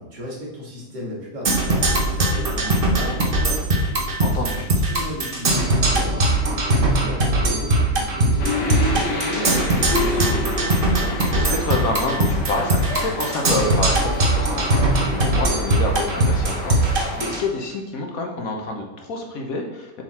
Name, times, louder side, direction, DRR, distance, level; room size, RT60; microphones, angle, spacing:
voice 1, 0.0-4.2 4.5-10.9, equal, 85° right, -4 dB, 2.6 m, -35 dB
Percussion, 1.4-17.4, right 1 dB, 40° right, 0.9 m, -21 dB
voice 2, 4.2-4.7 11.2-20.0, left 2 dB, 60° left, 2 dB, 1.4 m, -28 dB
sound 1, 8.4-17.4, left 2 dB, 85° left, 1.7 m, -29 dB
7.3 x 4.0 x 4.3 m, 1.1 s
omnidirectional pair, 1.8 m